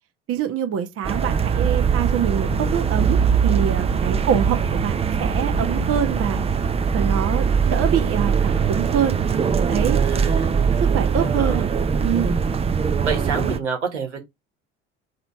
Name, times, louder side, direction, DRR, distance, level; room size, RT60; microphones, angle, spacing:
voice 1, 0.3-4.9 5.2-6.4 6.9-9.1 9.7-10.0 10.8-11.7 12.0-12.4, right 9 dB, 40° right, 1.1 m, -25 dB
sound 1, 1.0-13.6, right 6 dB, 15° right, 0.5 m, -21 dB
voice 2, 10.0-10.5 11.2-11.6 13.0-14.2, right 5 dB, 80° right, 1.4 m, -29 dB
4.0 x 2.9 x 4.6 m
figure-of-eight pair, 70°, 35 cm